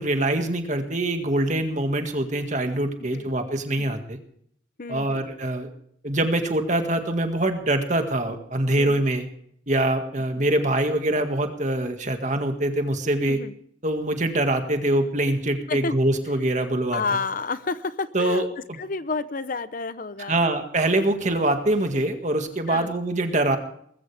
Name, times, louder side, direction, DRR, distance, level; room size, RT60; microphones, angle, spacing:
voice 1, 0.0-4.2 4.9-5.7 6.0-9.3 9.7-13.4 13.8-17.0 18.1-18.8 20.3-23.6, right 1 dB, 40° right, 6 dB, 1.9 m, -24 dB
voice 2, 4.8-5.2 8.8-9.1 13.2-13.5 15.7-15.9 16.9-18.4 18.8-20.4 22.7-22.9, left 4 dB, 45° left, 13 dB, 0.8 m, -30 dB
20.0 x 15.5 x 3.5 m, 0.67 s
head